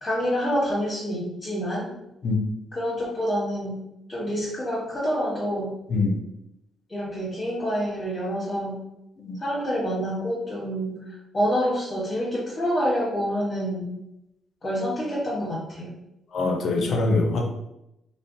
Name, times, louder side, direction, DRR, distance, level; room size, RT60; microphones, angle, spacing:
voice 1, 0.0-1.9 2.7-3.8 4.1-5.8 6.9-8.8 9.4-11.0 11.3-14.0 14.6-15.9, equal, 30° left, -10 dB, 1.0 m, -27 dB
voice 2, 16.3-17.5, left 3 dB, 60° left, 3 dB, 0.4 m, -23 dB
2.4 x 2.1 x 2.5 m, 0.85 s
cardioid pair, 90°, 0 cm